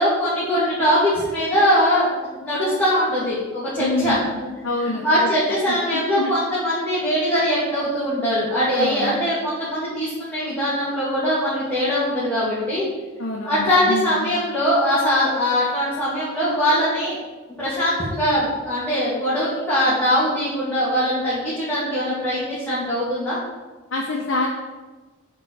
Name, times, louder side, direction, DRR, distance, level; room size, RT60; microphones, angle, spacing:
voice 1, 0.0-4.2 4.8-12.8 13.4-17.2 17.6-23.4, equal, 5° left, -12 dB, 2.3 m, -21 dB
voice 2, 3.8-4.3 4.6-6.3 8.7-9.1 13.2-14.2 23.9-24.5, left 2 dB, 55° left, -2 dB, 1.1 m, -27 dB
7.4 x 4.6 x 6.5 m, 1.2 s
head